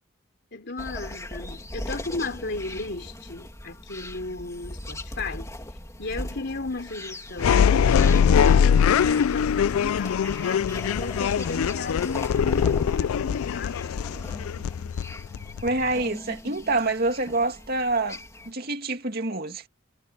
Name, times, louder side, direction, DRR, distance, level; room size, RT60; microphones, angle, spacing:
voice 1, 0.5-5.5 6.0-14.0, left 3 dB, 55° left, 3.5 m, -35 dB
sound 1, 0.8-18.5, left 1 dB, 15° left, 2.6 m, -39 dB
sound 2, 7.4-16.0, left 7 dB, 80° left, 0.3 m, -22 dB
voice 2, 15.6-18.2 18.5-19.7, right 2 dB, 45° right, 2.4 m, -26 dB
head